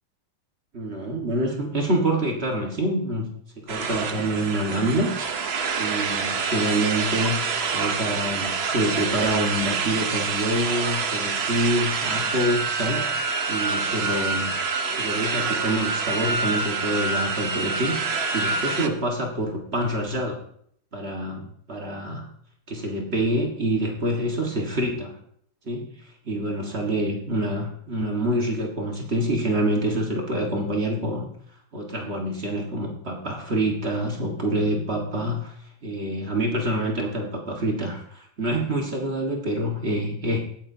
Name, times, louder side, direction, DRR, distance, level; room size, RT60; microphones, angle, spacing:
voice 1, 0.7-3.3 3.6-5.1 5.8-13.1 13.5-14.5 15.0-20.4 20.9-22.3 22.7-25.1 25.7-25.9 26.3-31.3 31.7-35.5 35.8-40.4, right 1 dB, 35° right, 0 dB, 1.7 m, -26 dB
sound 1, 3.7-18.9, right 4 dB, 60° right, 0.6 m, -27 dB
17.0 x 9.2 x 2.8 m, 0.66 s
omnidirectional pair, 2.2 m